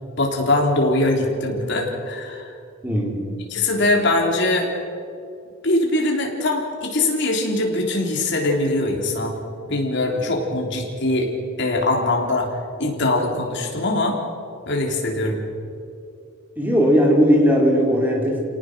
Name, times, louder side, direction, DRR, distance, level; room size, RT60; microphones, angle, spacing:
voice 1, 0.2-2.5 3.5-4.7 5.6-9.3 9.7-11.3 11.6-12.5 12.8-14.2 14.7-15.4, left 2 dB, 60° left, 0 dB, 3.7 m, -22 dB
voice 2, 2.8-3.4 16.6-18.5, equal, 10° right, -1 dB, 3.8 m, -18 dB
28.5 x 18.0 x 6.4 m, 2.6 s
head